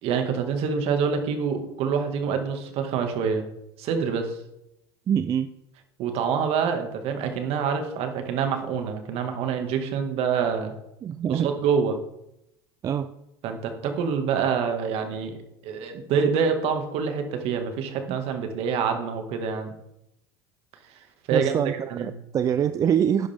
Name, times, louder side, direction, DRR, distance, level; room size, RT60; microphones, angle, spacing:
voice 1, 0.0-3.4 3.8-4.4 6.0-10.7 11.3-12.0 13.4-15.3 15.6-19.7 21.3-22.1, right 6 dB, 55° right, 6 dB, 1.9 m, -26 dB
voice 2, 5.1-5.5 11.0-11.5 12.8-13.1 18.1-18.2 21.3-23.3, right 9 dB, 30° right, 11 dB, 0.4 m, -24 dB
11.5 x 10.0 x 3.6 m, 0.84 s
supercardioid pair, 115°, 12 cm